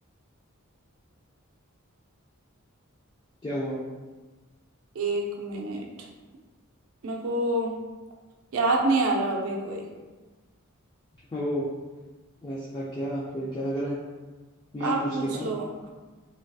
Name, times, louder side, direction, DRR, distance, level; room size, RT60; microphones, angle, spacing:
voice 1, 3.4-3.8 11.3-11.7 12.4-14.0 14.7-15.5, equal, 20° left, -8 dB, 0.3 m, -31 dB
voice 2, 4.9-5.9 7.0-7.7 8.5-9.9 14.8-15.9, right 2 dB, 70° right, 0 dB, 0.4 m, -27 dB
3.3 x 2.6 x 2.3 m, 1.3 s
head